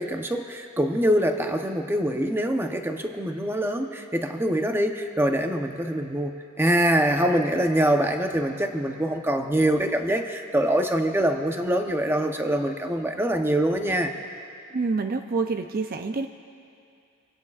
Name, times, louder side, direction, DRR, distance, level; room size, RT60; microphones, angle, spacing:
voice 1, 0.0-14.1, right 1 dB, 10° right, 4 dB, 0.8 m, -24 dB
voice 2, 14.7-16.3, right 4 dB, 45° right, 6 dB, 0.5 m, -27 dB
25.5 x 17.0 x 2.4 m, 2.5 s
head